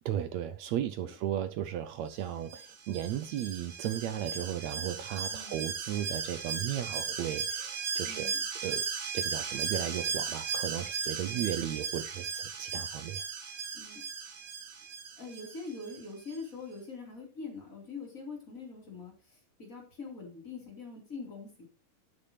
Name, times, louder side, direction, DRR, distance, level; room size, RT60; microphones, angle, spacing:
voice 1, 0.0-8.3 8.6-8.8 9.1-13.2, right 11 dB, 85° right, 1.6 m, -35 dB
Alarm, 2.5-16.0 16.3-16.4, right 6 dB, 50° right, 2.4 m, -36 dB
voice 2, 8.1-8.4 11.3-11.4 12.2-12.3 13.7-14.0 15.2-21.6, left 4 dB, 25° left, 4.2 m, -44 dB
13.0 x 8.8 x 3.3 m
omnidirectional pair, 3.9 m